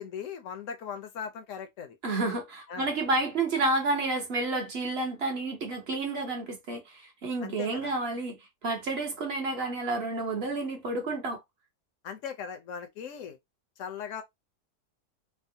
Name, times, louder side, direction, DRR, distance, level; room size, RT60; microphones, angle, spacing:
voice 1, 0.0-2.0 2.7-2.9 7.4-7.9 12.0-13.4 13.8-14.2, left 7 dB, 65° left, 0.8 m, -39 dB
voice 2, 2.0-8.4 8.6-11.4, right 2 dB, 50° right, 0.9 m, -30 dB
3.4 x 2.0 x 2.6 m
omnidirectional pair, 1.7 m